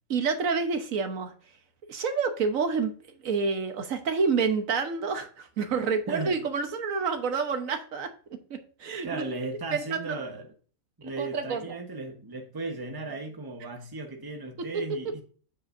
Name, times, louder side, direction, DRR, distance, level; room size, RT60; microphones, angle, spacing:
voice 1, 0.1-1.3 1.9-2.9 3.2-8.1 8.5-9.2 9.7-10.2 11.0-11.7 14.7-15.2, right 5 dB, 70° right, 1.5 m, -28 dB
voice 2, 9.0-10.5 11.0-15.2, right 3 dB, 15° right, 1.2 m, -36 dB
7.8 x 7.6 x 2.7 m
omnidirectional pair, 1.5 m